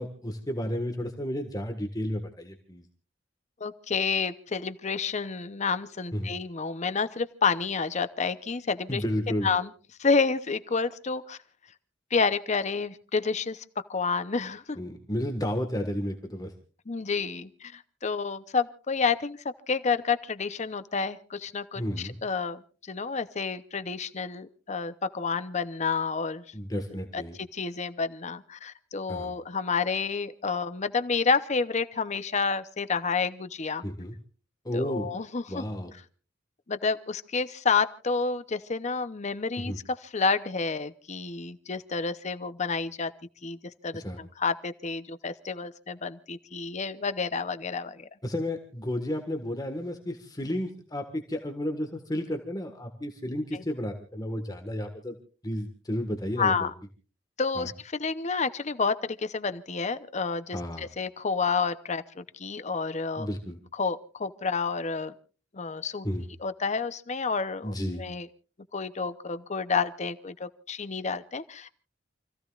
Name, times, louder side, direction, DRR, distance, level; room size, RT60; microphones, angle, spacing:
voice 1, 0.0-2.8 6.1-6.3 8.9-9.5 14.8-16.5 21.7-22.2 26.5-27.4 29.1-29.3 33.8-34.2 34.6-35.1 35.5-35.9 39.6-39.8 43.9-44.2 48.2-55.1 55.4-56.7 57.5-57.7 60.5-60.9 63.2-63.6 66.0-66.3 67.6-68.0, equal, 20° left, 4 dB, 1.6 m, -32 dB
voice 2, 3.6-9.0 9.4-9.7 10.0-11.4 12.1-13.6 13.9-14.8 16.9-19.4 19.7-22.6 22.9-26.4 27.1-27.2 27.5-33.8 34.7-35.6 36.7-39.7 40.0-43.1 43.4-43.6 43.8-48.1 53.5-53.6 56.4-56.7 57.4-63.3 63.8-65.1 65.5-66.1 66.4-68.3 68.7-71.7, left 5 dB, 40° left, 12 dB, 0.8 m, -29 dB
29.0 x 15.5 x 2.4 m, 0.38 s
head